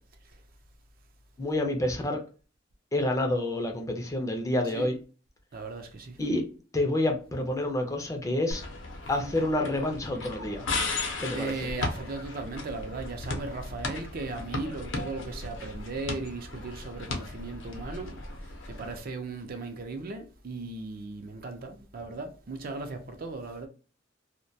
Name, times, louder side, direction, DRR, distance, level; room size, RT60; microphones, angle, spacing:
voice 1, 1.4-2.2 2.9-5.0 6.2-6.4 6.7-8.6 9.1-10.7 11.2-11.7, left 1 dB, 20° left, 0.4 m, -28 dB
voice 2, 5.5-6.2 9.2-9.3 11.3-18.2 18.7-23.7, right 3 dB, 50° right, 0.5 m, -37 dB
sound 1, 8.5-19.0, left 3 dB, 75° left, 0.6 m, -36 dB
2.2 x 2.1 x 2.6 m
head